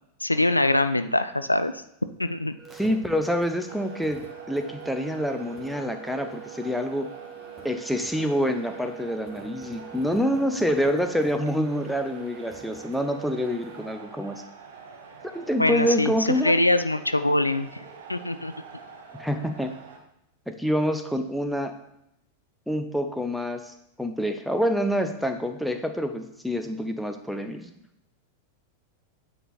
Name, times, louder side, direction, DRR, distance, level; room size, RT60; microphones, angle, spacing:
voice 1, 0.2-1.7 2.2-2.6 15.6-18.5, left 1 dB, 85° left, 12 dB, 0.3 m, -23 dB
sound 1, 2.6-13.9, right 8 dB, 15° right, 1.7 m, -44 dB
voice 2, 2.8-7.1 7.6-14.4 15.2-16.6 19.2-19.7 20.5-21.7 22.7-27.7, equal, ahead, 6 dB, 0.7 m, -27 dB
sound 2, 3.7-20.0, right 5 dB, 60° right, 1.1 m, -46 dB
9.1 x 4.0 x 4.1 m, 0.80 s
figure-of-eight pair, 90°, 0 cm